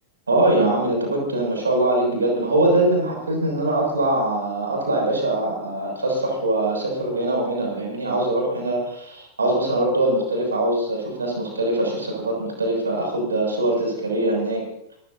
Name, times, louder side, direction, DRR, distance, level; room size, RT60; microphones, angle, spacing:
voice 1, 0.3-14.6, right 1 dB, 75° right, 1 dB, 6.7 m, -22 dB
27.0 x 15.5 x 2.8 m, 0.75 s
figure-of-eight pair, 90°, 0 cm